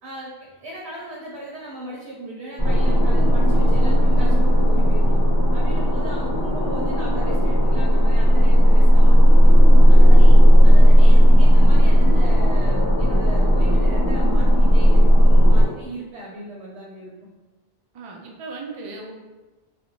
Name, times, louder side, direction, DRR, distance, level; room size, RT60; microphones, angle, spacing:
voice 1, 0.0-5.1 5.5-9.5 9.9-10.4 10.6-17.3, right 1 dB, 90° right, -4 dB, 0.9 m, -37 dB
sound 1, 2.6-15.7, equal, 20° left, 0.8 m, -13 dB
voice 2, 17.9-19.1, right 3 dB, 60° right, 0 dB, 0.3 m, -36 dB
2.5 x 2.1 x 2.9 m, 1.2 s
omnidirectional pair, 1.1 m